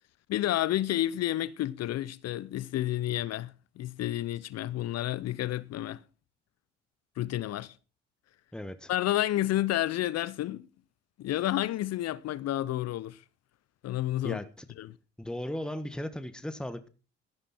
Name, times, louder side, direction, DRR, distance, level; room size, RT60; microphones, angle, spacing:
voice 1, 0.3-6.0 7.2-7.8 8.9-10.7 11.2-13.2 13.8-14.4 14.8-15.0, left 14 dB, 60° left, 0.6 m, -30 dB
voice 2, 8.5-8.9 14.2-14.6 15.2-16.9, left 1 dB, 5° left, 1.5 m, -36 dB
13.5 x 11.5 x 4.4 m
hypercardioid pair, 50°, 30 cm